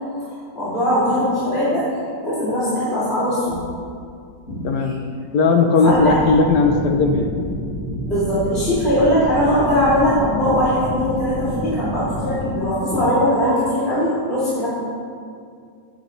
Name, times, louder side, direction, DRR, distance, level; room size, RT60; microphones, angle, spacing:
voice 1, 0.5-3.6 4.5-4.6 5.8-6.2 8.1-14.7, equal, 35° left, -12 dB, 3.0 m, -20 dB
voice 2, 5.3-7.3, left 4 dB, 70° left, 3 dB, 1.3 m, -17 dB
sound 1, 5.9-12.5, equal, ahead, 1.7 m, -28 dB
17.0 x 8.7 x 3.2 m, 2.3 s
omnidirectional pair, 2.0 m